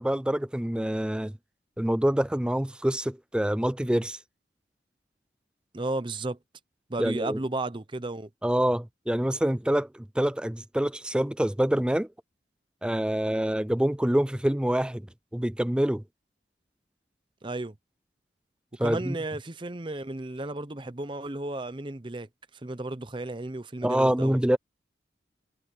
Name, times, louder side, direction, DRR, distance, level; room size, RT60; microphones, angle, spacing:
voice 1, 0.0-1.3 1.8-4.2 7.0-7.4 8.4-12.1 12.8-15.1 15.3-16.0 18.8-19.2 23.8-24.6, right 1 dB, 5° right, 0.4 m, -26 dB
voice 2, 5.7-6.4 6.9-8.3 17.4-17.7 18.8-22.3 22.6-24.4, right 2 dB, 25° right, 0.8 m, -33 dB
head